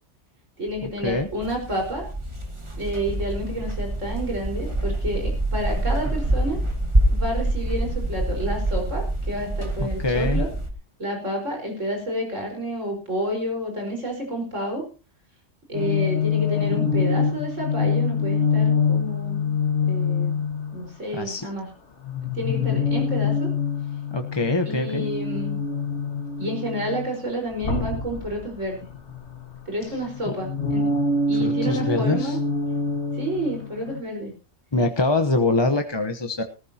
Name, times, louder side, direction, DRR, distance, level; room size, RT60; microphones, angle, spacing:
voice 1, 0.6-2.1 2.8-6.6 7.1-10.5 11.0-14.9 15.7-19.5 19.8-20.4 20.7-21.7 22.3-23.5 24.6-25.6 26.4-28.8 29.7-30.9 31.3-32.4 33.1-34.3, equal, 80° right, 1 dB, 5.2 m, -30 dB
sound 1, 0.7-10.7, right 1 dB, 25° right, 1.8 m, -26 dB
voice 2, 9.8-10.4 21.1-21.5 24.1-25.0 30.3-30.4 31.4-32.4 34.7-36.4, left 2 dB, 25° left, 6 dB, 0.9 m, -24 dB
sound 2, 15.7-20.9 22.0-27.1 27.6-29.6 30.0-34.0, left 4 dB, 65° left, 2.1 m, -25 dB
19.0 x 14.0 x 2.9 m, 0.31 s
omnidirectional pair, 1.3 m